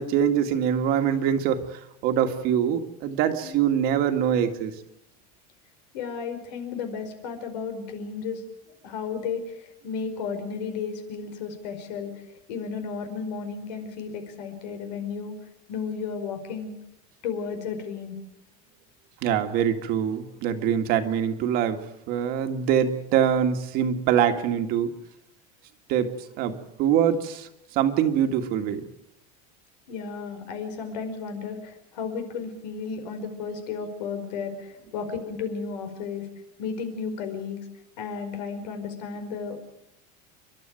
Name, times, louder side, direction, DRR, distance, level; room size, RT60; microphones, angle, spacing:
voice 1, 0.0-4.7 19.2-21.8 22.1-24.9 25.9-26.1 26.4-28.9, right 9 dB, 45° right, 7 dB, 1.9 m, -24 dB
voice 2, 5.9-8.4 8.8-15.3 15.7-16.8 17.2-18.2 29.9-36.3 36.6-37.6 38.0-39.6, left 5 dB, 80° left, 7 dB, 5.1 m, -33 dB
29.5 x 12.0 x 9.1 m, 0.84 s
supercardioid pair, 160°, 21 cm